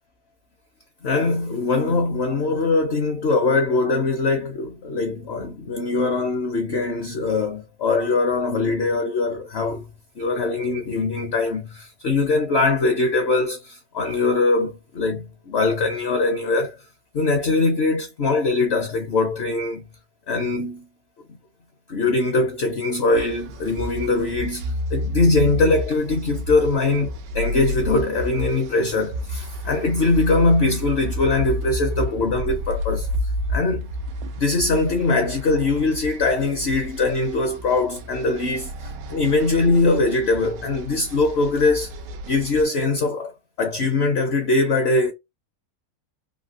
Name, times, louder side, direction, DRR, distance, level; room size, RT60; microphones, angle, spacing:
voice 1, 1.0-16.8 17.1-19.9 20.3-20.9 21.9-33.1 33.5-33.9 34.4-41.9 42.3-43.3 43.6-45.1, left 3 dB, 60° left, 0.7 m, -22 dB
sound 1, 23.1-42.6, equal, 85° right, 1.2 m, -31 dB
3.5 x 2.6 x 2.4 m
omnidirectional pair, 1.8 m